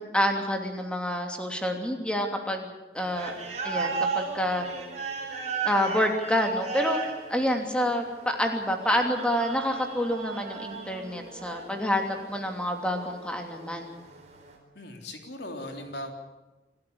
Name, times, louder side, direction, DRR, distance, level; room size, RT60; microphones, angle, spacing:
voice 1, 0.0-2.7 2.9-3.3 3.6-4.7 5.6-7.0 7.3-13.9, equal, 5° left, 3 dB, 3.0 m, -28 dB
sound 1, 3.0-14.5, right 4 dB, 40° right, 4.3 m, -36 dB
voice 2, 14.7-16.1, left 1 dB, 75° left, 4 dB, 3.7 m, -38 dB
27.5 x 13.0 x 10.0 m, 1.1 s
head